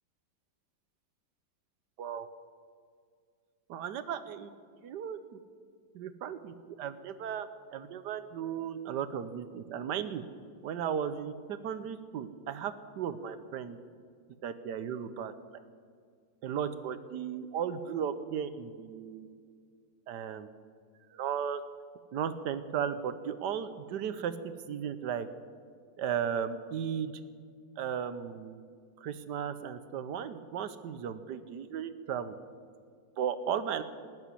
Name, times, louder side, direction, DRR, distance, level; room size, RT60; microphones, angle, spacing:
voice 1, 3.7-4.5 4.8-5.4 5.9-10.2 10.6-13.8 14.4-15.3 16.4-19.3 20.1-20.5 21.1-21.6 22.1-25.3 26.0-27.1 27.8-28.6 29.0-32.3 33.2-33.8, right 8 dB, 65° right, 12 dB, 1.3 m, -35 dB
19.0 x 7.2 x 9.6 m, 2.1 s
omnidirectional pair, 2.1 m